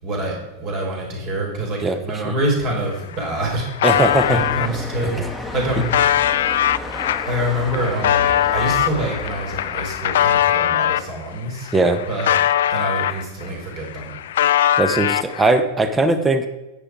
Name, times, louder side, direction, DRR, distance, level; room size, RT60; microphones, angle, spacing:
voice 1, 0.0-3.7 4.2-6.0 7.3-11.7 12.1-12.4 12.7-14.2, right 1 dB, 40° right, 0 dB, 4.4 m, -26 dB
sound 1, 2.8-2.9 3.1-4.7 5.3-11.1 11.6-13.5 13.8-15.6, left 11 dB, 60° left, 0.4 m, -21 dB
voice 2, 3.8-4.4 5.0-5.1 11.7-12.0 14.8-16.5, right 2 dB, 15° right, 9 dB, 1.1 m, -19 dB
sound 2, 3.9-10.5, left 1 dB, 5° left, 1.4 m, -33 dB
10.5 x 9.2 x 4.7 m, 1.0 s
figure-of-eight pair, 90°, 0 cm